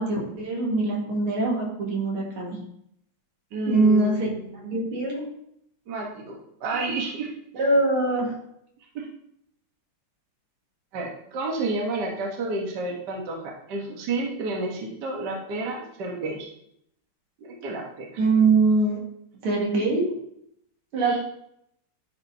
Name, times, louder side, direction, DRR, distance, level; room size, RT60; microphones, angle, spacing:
voice 1, 0.0-2.6 3.7-4.3 4.7-5.3 7.5-8.3 18.2-19.0 19.4-20.2 20.9-21.2, right 3 dB, 80° right, -2 dB, 2.6 m, -22 dB
voice 2, 3.5-4.8 5.9-7.3 9.0-9.1 10.9-13.4 13.7-16.5 17.6-18.2 21.0-21.2, right 3 dB, 55° right, -1 dB, 1.7 m, -30 dB
11.5 x 5.0 x 2.7 m, 0.73 s
omnidirectional pair, 2.4 m